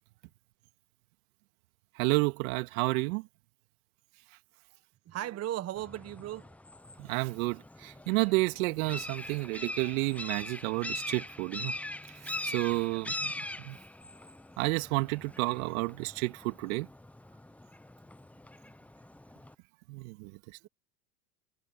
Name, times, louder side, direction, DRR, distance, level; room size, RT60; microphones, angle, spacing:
voice 1, 2.0-3.2 7.0-11.8 12.4-13.3 13.6-13.8 14.6-16.9 19.9-20.3, right 25 dB, 55° right, 2.6 m, -30 dB
voice 2, 5.1-6.5 12.9-13.0, right 13 dB, 30° right, 1.4 m, -36 dB
sound 1, 5.8-19.6, left 1 dB, 5° left, 0.9 m, -42 dB
hypercardioid pair, 100°, 49 cm